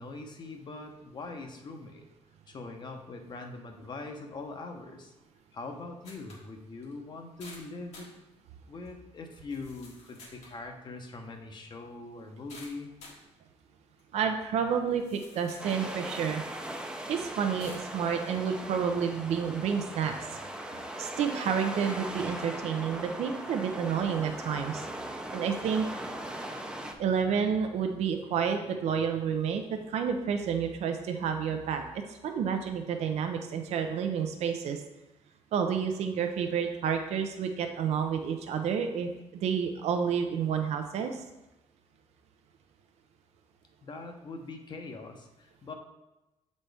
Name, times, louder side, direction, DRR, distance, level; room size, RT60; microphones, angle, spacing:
voice 1, 0.0-2.1 2.5-5.1 5.5-8.1 8.7-12.9 43.8-45.7, left 3 dB, 40° left, 4 dB, 0.8 m, -42 dB
sound 1, 6.0-6.5 6.8-6.9 7.4-8.1 8.8-8.9 9.5-10.6 12.5-13.2 14.0-14.1 14.7-15.8 16.4-16.5 17.6-17.9, left 2 dB, 70° left, 1.6 m, -50 dB
voice 2, 14.1-16.4 17.1-20.4 21.0-24.9 25.3-25.9 27.0-34.8 35.5-41.2, right 7 dB, 70° right, 5 dB, 0.6 m, -30 dB
sound 2, 15.6-26.9, right 1 dB, 10° right, 0.5 m, -39 dB
7.3 x 4.2 x 3.4 m, 0.99 s
cardioid pair, 130°, 11 cm